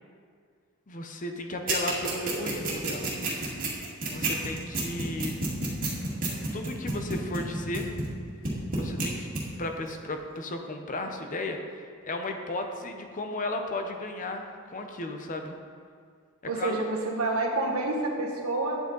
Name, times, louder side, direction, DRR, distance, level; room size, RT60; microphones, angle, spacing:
voice 1, 0.9-3.1 4.1-5.4 6.5-8.0 8.7-9.3 9.6-15.6 16.6-16.8, left 2 dB, 40° left, 4 dB, 0.8 m, -35 dB
sound 1, 1.7-8.2 8.4-9.1 9.3-9.4, right 3 dB, 40° right, 2.0 m, -29 dB
voice 2, 16.4-18.8, right 2 dB, 90° right, 0 dB, 1.4 m, -28 dB
10.0 x 7.9 x 3.9 m, 2.1 s
head